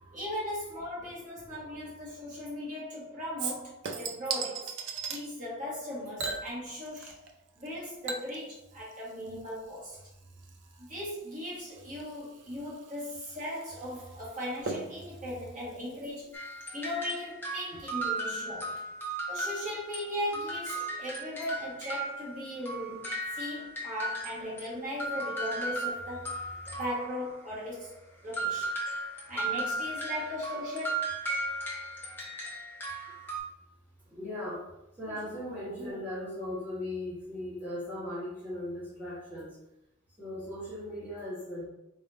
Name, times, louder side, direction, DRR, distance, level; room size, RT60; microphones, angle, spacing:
voice 1, 0.1-4.7 5.1-7.1 7.6-10.0 10.8-16.4 16.7-18.8 19.3-23.1 23.3-26.4 26.7-28.7 29.3-31.2 35.0-35.2 35.8-35.9, equal, 40° right, -7 dB, 1.3 m, -38 dB
voice 2, 1.4-1.8 7.5-7.6 10.2-10.9 16.7-16.8 17.7-17.8 19.3-19.4 25.2-25.3 26.6-26.8 33.1-33.2 34.1-39.6 40.2-41.6, left 1 dB, 10° right, -10 dB, 1.3 m, -39 dB
Chink clink / Liquid, 3.4-5.2 6.2-7.3 7.6-16.6 17.0-17.1, right 5 dB, 60° right, 0.5 m, -40 dB
sound 1, 16.3-20.0 20.3-24.7 25.0-27.3 28.3-33.4, right 2 dB, 10° left, 0.7 m, -36 dB
3.9 x 3.6 x 2.6 m, 0.86 s
head